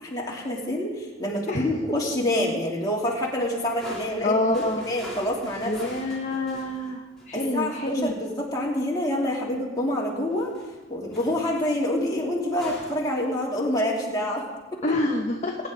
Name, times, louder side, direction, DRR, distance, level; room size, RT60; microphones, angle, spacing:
voice 1, 0.0-5.7 7.3-10.5 10.9-14.4 14.7-14.8, left 1 dB, 20° left, -4 dB, 3.0 m, -27 dB
sound 1, 3.4-7.5 7.9-8.1 10.3-10.8 11.1-11.5 12.5-13.0, equal, 5° left, 3.7 m, -43 dB
voice 2, 4.2-4.8 5.6-8.2 14.8-15.6, left 2 dB, 35° left, 0 dB, 1.0 m, -27 dB
22.0 x 10.0 x 4.0 m, 1.2 s
head